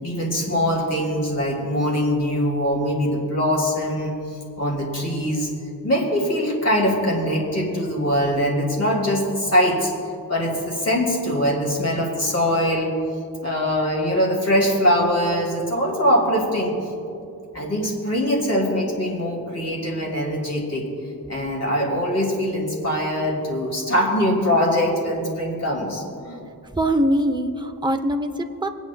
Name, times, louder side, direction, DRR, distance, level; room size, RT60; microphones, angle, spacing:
voice 1, 0.0-5.5 5.8-9.9 10.3-12.9 13.4-16.7 17.5-20.9 21.3-26.4, equal, 45° left, -1 dB, 2.5 m, -22 dB
voice 2, 26.7-28.7, right 1 dB, 10° right, 5 dB, 0.7 m, -22 dB
25.5 x 9.3 x 2.3 m, 2.7 s
wide cardioid pair, 85°, 36 cm